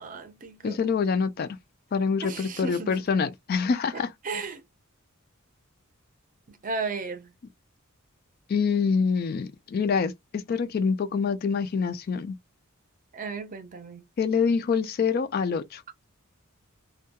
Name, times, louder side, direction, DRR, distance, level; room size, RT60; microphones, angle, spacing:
voice 1, 0.0-0.8 2.2-3.0 3.9-4.6 6.5-7.3 13.1-14.0, right 4 dB, 40° right, 0.5 m, -35 dB
voice 2, 0.6-1.6 1.9-4.1 8.5-12.3 14.2-15.8, left 5 dB, 45° left, 0.3 m, -26 dB
2.2 x 2.2 x 2.8 m
head